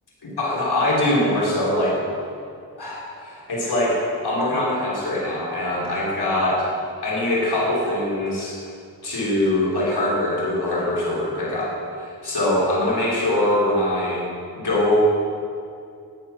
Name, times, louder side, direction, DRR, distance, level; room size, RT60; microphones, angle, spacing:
voice 1, 0.2-2.0 2.8-6.7 7.0-8.6 9.0-14.3 14.5-15.0, left 1 dB, 75° left, -5 dB, 3.3 m, -23 dB
14.5 x 10.5 x 5.6 m, 2.4 s
wide cardioid pair, 100°, 40 cm